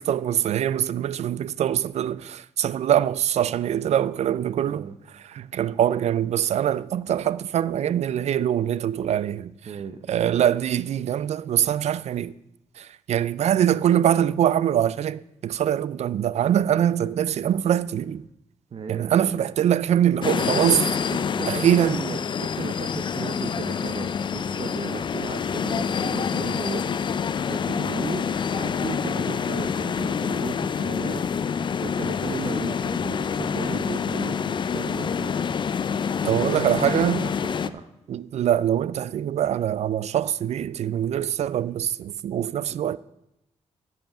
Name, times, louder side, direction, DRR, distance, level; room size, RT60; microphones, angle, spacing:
voice 1, 0.0-4.9 5.2-9.5 10.1-12.3 12.8-18.3 18.9-20.9 21.5-22.0 36.3-37.3 38.1-43.0, right 10 dB, 65° right, 0.4 m, -23 dB
voice 2, 4.6-5.0 9.7-10.0 18.7-19.3 21.1-24.1 24.6-35.3 36.2-37.3 37.7-37.9, right 6 dB, 50° right, 0.7 m, -36 dB
sound 1, 20.2-37.7, left 7 dB, 40° left, 0.4 m, -27 dB
10.5 x 5.6 x 7.1 m
wide cardioid pair, 120°, 12 cm